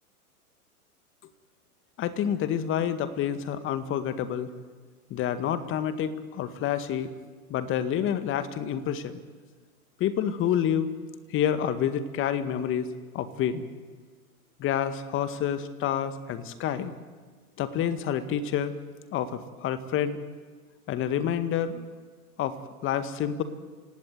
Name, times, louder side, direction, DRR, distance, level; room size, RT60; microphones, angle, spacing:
voice 1, 2.0-4.5 5.1-7.1 7.5-9.2 10.0-10.9 11.3-13.6 14.6-16.9 17.6-18.8 19.1-20.2 20.9-21.9 22.4-23.4, left 9 dB, 25° left, 11 dB, 1.9 m, -28 dB
28.0 x 17.0 x 9.4 m, 1.5 s
hypercardioid pair, 120°, 45 cm